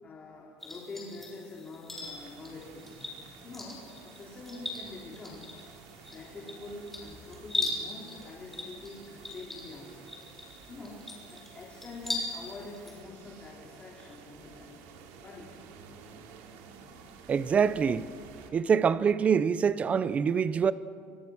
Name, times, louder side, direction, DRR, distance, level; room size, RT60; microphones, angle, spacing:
voice 1, 0.0-3.1 3.4-5.5 6.1-10.1 10.7-14.9 15.2-15.7, left 2 dB, 25° left, 3.8 m, -45 dB
sound 1, 0.6-13.0, left 2 dB, 5° left, 6.0 m, -40 dB
sound 2, 1.9-18.5, right 6 dB, 80° right, 3.6 m, -52 dB
voice 2, 17.3-18.1 18.5-20.7, right 6 dB, 25° right, 0.8 m, -25 dB
29.5 x 26.0 x 6.3 m
cardioid pair, 145°, 5 cm